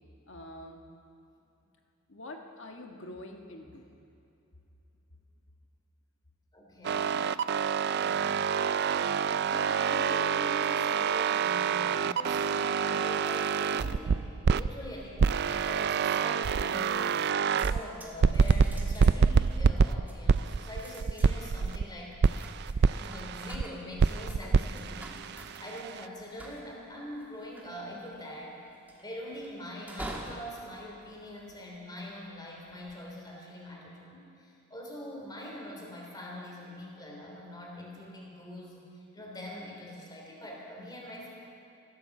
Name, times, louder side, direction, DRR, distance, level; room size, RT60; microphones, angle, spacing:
voice 1, 0.3-0.8 2.1-3.9, left 1 dB, 60° left, 3 dB, 1.5 m, -45 dB
voice 2, 6.5-7.3 7.8-8.4 9.5-17.1 17.5-22.2 22.9-25.2 25.6-28.6 29.0-38.8 39.1-41.3, left 1 dB, 20° left, -2 dB, 3.4 m, -43 dB
sound 1, 6.8-14.7 15.2-17.8 18.2-21.9 22.2-23.6 24.0-26.1, right 6 dB, 50° right, 0.3 m, -27 dB
sound 2, 16.7-17.2 17.4-32.0 32.6-33.0, right 1 dB, 10° right, 1.4 m, -48 dB
15.0 x 13.0 x 7.2 m, 2.8 s
head